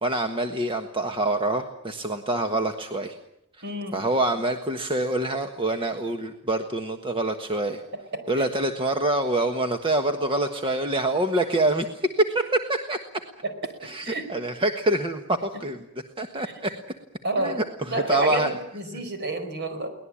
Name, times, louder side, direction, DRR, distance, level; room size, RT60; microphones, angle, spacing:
voice 1, 0.0-3.2 3.6-3.7 3.9-7.8 8.3-13.0 13.8-15.9 16.2-16.7 17.4-18.5 18.9-19.0, right 2 dB, 25° right, 5 dB, 1.4 m, -26 dB
voice 2, 3.6-4.0 14.0-14.2 17.2-17.6 17.9-19.9, right 2 dB, 55° right, 7 dB, 4.8 m, -28 dB
23.0 x 19.0 x 8.7 m, 0.78 s
head